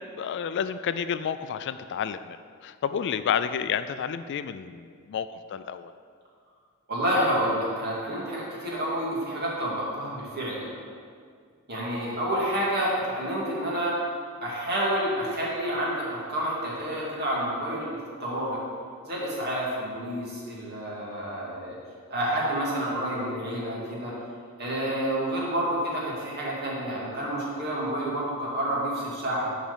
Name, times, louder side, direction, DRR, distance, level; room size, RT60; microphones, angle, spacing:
voice 1, 0.0-2.4 2.6-5.9, left 7 dB, 55° left, 12 dB, 0.3 m, -30 dB
voice 2, 6.9-10.7 11.7-13.9 14.4-18.6 19.1-21.8 22.1-24.1 24.6-29.5, right 1 dB, 50° right, -5 dB, 2.3 m, -29 dB
7.3 x 5.0 x 7.2 m, 2.1 s
head